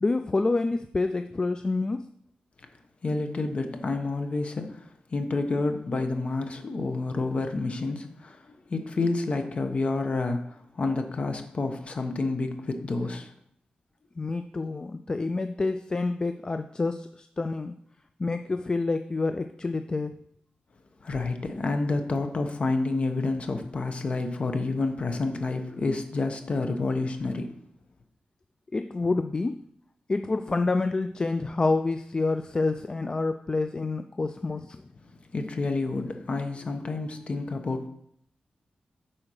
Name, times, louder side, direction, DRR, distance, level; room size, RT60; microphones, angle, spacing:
voice 1, 0.0-2.1 14.2-17.7 18.2-20.2 28.7-29.6 30.1-34.8, left 3 dB, 25° left, 8 dB, 0.3 m, -28 dB
voice 2, 3.0-4.8 5.1-8.4 8.7-10.5 10.8-13.3 21.0-27.5 35.3-37.9, left 3 dB, 40° left, 6 dB, 1.1 m, -29 dB
8.7 x 4.4 x 6.4 m, 0.69 s
wide cardioid pair, 145°, 3 cm